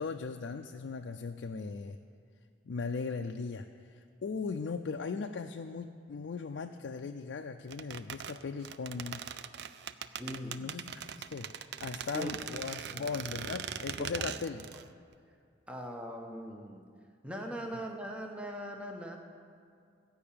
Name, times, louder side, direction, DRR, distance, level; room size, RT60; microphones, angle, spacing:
voice 1, 0.0-2.0 2.6-9.2 10.3-11.5 11.8-14.6 17.7-17.8, left 4 dB, 75° left, 5 dB, 0.4 m, -38 dB
sound 1, 7.7-14.9 15.1-15.2, right 8 dB, 65° right, 0.4 m, -41 dB
voice 2, 10.2-10.7 12.1-12.3 12.8-13.0 14.0-14.2 15.7-16.9 17.2-19.2, equal, 5° right, 1 dB, 0.7 m, -41 dB
14.0 x 5.5 x 8.6 m, 2.3 s
head